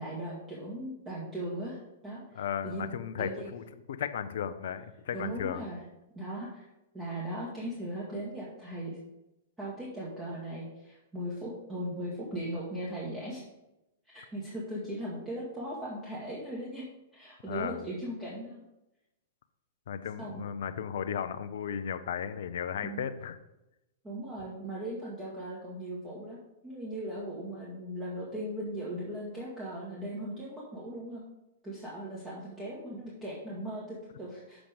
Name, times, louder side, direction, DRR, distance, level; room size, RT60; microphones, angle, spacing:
voice 1, 0.0-3.5 5.1-5.8 6.1-6.7 6.9-9.0 9.6-13.4 14.1-16.9 17.1-18.6 20.2-20.4 22.8-23.1 24.0-31.2 31.6-34.7, right 1 dB, 15° right, -6 dB, 1.8 m, -38 dB
voice 2, 2.4-5.7 17.5-17.9 19.9-23.4, left 8 dB, 60° left, 11 dB, 0.5 m, -35 dB
7.1 x 5.0 x 5.1 m, 0.94 s
figure-of-eight pair, 100°, 0 cm